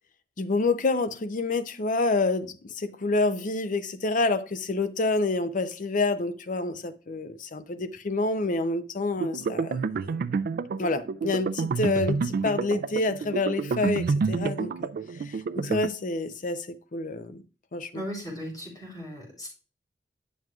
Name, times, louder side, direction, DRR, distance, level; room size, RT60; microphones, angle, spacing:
voice 1, 0.4-10.3 10.8-14.9 15.2-17.4 17.7-18.0, left 3 dB, 50° left, 0.6 m, -28 dB
sound 1, 9.2-15.9, right 5 dB, 55° right, 0.3 m, -29 dB
voice 2, 17.9-19.5, equal, 20° left, 3.5 m, -37 dB
9.1 x 6.2 x 2.4 m
head